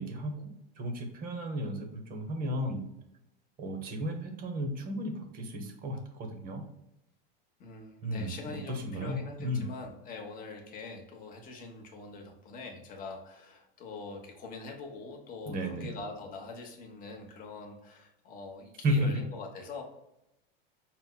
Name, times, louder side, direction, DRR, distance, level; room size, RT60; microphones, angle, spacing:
voice 1, 0.0-2.9 3.6-6.6 8.0-9.7 15.5-15.9 18.8-19.1, equal, 30° right, 5 dB, 0.7 m, -34 dB
voice 2, 7.6-19.8, left 3 dB, 30° left, 1 dB, 0.8 m, -44 dB
5.4 x 2.0 x 2.2 m, 0.87 s
supercardioid pair, 130°, 29 cm